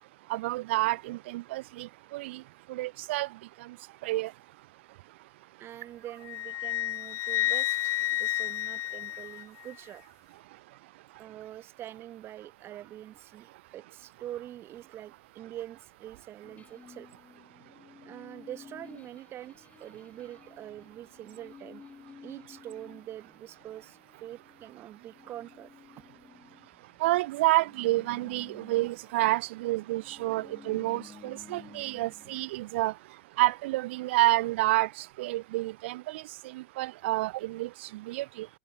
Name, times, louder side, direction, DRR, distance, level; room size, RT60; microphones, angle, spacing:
voice 1, 0.3-2.4 2.7-3.3 4.0-4.3 27.0-32.9 33.4-36.2 36.5-38.5, right 19 dB, 60° right, 0.7 m, -29 dB
voice 2, 5.6-10.0 11.2-17.1 18.0-21.8 22.2-25.7, right 12 dB, 35° right, 1.1 m, -44 dB
Wind instrument woodwind instrument, 6.2-9.7, left 15 dB, 40° left, 1.4 m, -31 dB
sound 1, 16.4-27.1 27.3-32.5, left 6 dB, 20° left, 2.4 m, -54 dB
hypercardioid pair, 95°, 7 cm